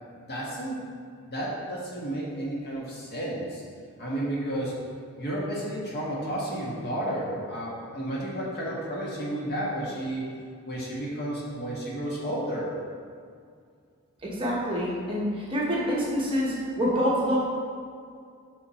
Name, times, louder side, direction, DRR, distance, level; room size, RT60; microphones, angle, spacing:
voice 1, 0.1-0.8 1.2-3.6 4.0-4.7 5.2-10.2 10.7-12.7, right 1 dB, 45° left, -5 dB, 1.4 m, -32 dB
voice 2, 14.2-17.4, equal, 25° right, -6 dB, 1.1 m, -26 dB
5.7 x 5.6 x 4.3 m, 2.2 s
head